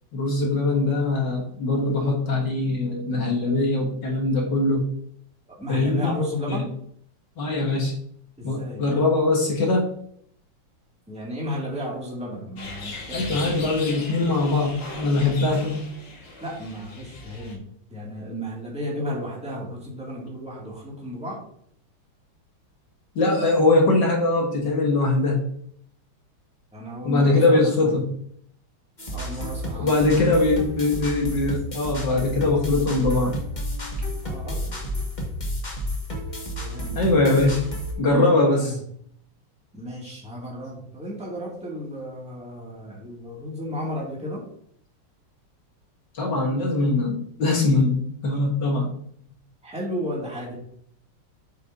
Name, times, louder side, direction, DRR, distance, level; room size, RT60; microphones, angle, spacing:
voice 1, 0.1-4.8 5.7-6.2 6.5-6.6 7.4-8.0 8.4-9.9 13.1-15.9 23.2-25.4 27.0-28.1 29.8-33.4 37.0-37.7 38.0-38.8 46.1-48.9, left 2 dB, 60° left, -1 dB, 1.9 m, -22 dB
voice 2, 5.5-6.7 8.4-8.8 11.1-13.7 16.4-17.6 17.9-21.4 26.7-28.0 29.1-29.9 34.2-34.8 36.6-37.0 38.4-38.8 39.7-44.4 49.3-50.5, left 1 dB, 5° right, -4 dB, 2.2 m, -33 dB
sound 1, 12.6-17.6, left 3 dB, 80° left, 2.7 m, -38 dB
sound 2, 29.0-37.9, equal, 20° left, 1.6 m, -31 dB
8.3 x 6.4 x 2.7 m, 0.66 s
omnidirectional pair, 2.4 m